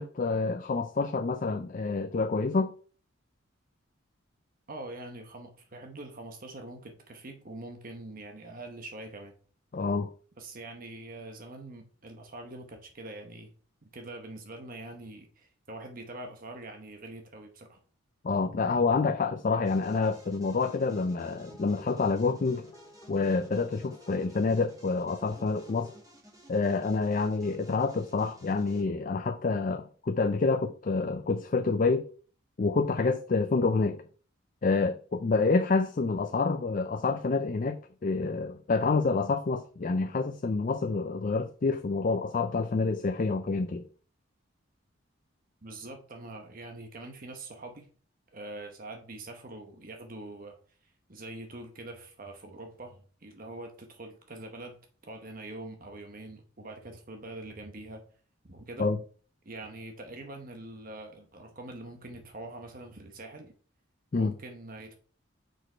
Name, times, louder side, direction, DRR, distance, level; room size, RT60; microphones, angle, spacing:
voice 1, 0.0-2.7 9.7-10.1 18.2-22.7 23.1-25.9 26.5-32.1 32.6-34.0 34.6-43.9 58.8-59.0 64.1-64.3, left 4 dB, 40° left, 0.4 m, -28 dB
voice 2, 4.7-9.3 10.4-13.5 13.8-17.8 45.6-47.9 48.3-50.6 50.8-54.8 55.0-58.0 58.4-58.9 59.4-63.5 64.2-64.9, right 2 dB, 45° right, 0.9 m, -44 dB
sound 1, 19.6-28.8, left 1 dB, 15° right, 1.9 m, -55 dB
sound 2, 21.2-26.0, left 2 dB, 20° left, 1.2 m, -55 dB
6.2 x 5.0 x 4.4 m
head